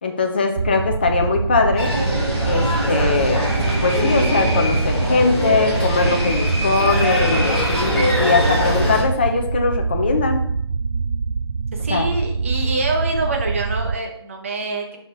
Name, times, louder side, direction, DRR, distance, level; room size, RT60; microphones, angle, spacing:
voice 1, 0.0-1.9 2.4-3.4 3.8-10.4 11.9-12.1, left 4 dB, 20° left, 4 dB, 0.6 m, -21 dB
sound 1, 0.6-14.0, right 4 dB, 75° right, 0.4 m, -24 dB
sound 2, 1.8-9.0, equal, 5° left, 1.1 m, -22 dB
voice 2, 11.7-15.0, right 2 dB, 30° right, 2 dB, 1.0 m, -25 dB
5.3 x 5.1 x 5.5 m, 0.72 s
figure-of-eight pair, 170°, 14 cm